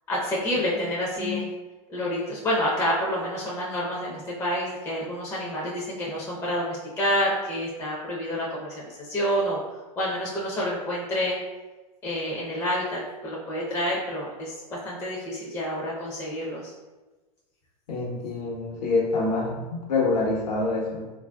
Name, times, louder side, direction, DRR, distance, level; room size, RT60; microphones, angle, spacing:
voice 1, 0.1-1.5 1.9-9.6 10.0-11.4 12.0-16.7, equal, 15° left, -5 dB, 0.5 m, -28 dB
voice 2, 17.9-21.1, left 3 dB, 85° left, -2 dB, 1.0 m, -26 dB
3.4 x 2.5 x 2.2 m, 1.2 s
hypercardioid pair, 125°, 20 cm